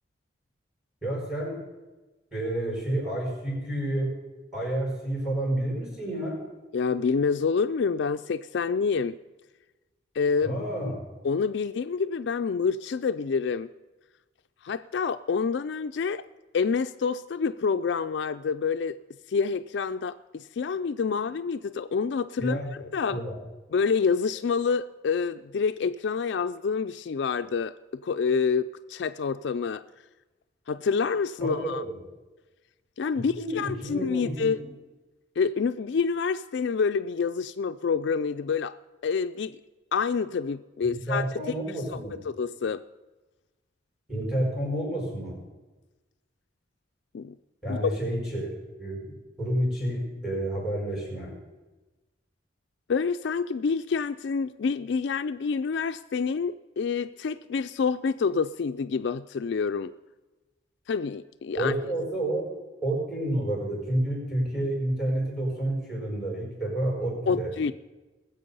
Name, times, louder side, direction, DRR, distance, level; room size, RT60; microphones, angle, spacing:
voice 1, 1.0-1.6 2.3-4.1 4.5-6.4 10.4-11.0 22.4-22.7 23.1-23.4 31.4-31.9 33.1-34.7 40.8-42.2 44.1-45.4 47.6-51.3 61.6-62.5 62.8-67.5, right 1 dB, ahead, -1 dB, 4.8 m, -30 dB
voice 2, 6.7-9.2 10.2-10.6 11.2-13.7 14.6-16.2 16.5-19.0 19.3-22.6 22.9-23.2 23.7-27.7 28.0-29.8 30.7-31.8 33.0-34.6 35.4-38.8 39.0-39.6 39.9-41.4 42.1-42.8 47.1-47.3 47.7-48.0 52.9-59.9 60.9-61.7 67.3-67.7, left 5 dB, 60° left, 11 dB, 0.3 m, -27 dB
20.0 x 7.8 x 5.5 m, 1.1 s
head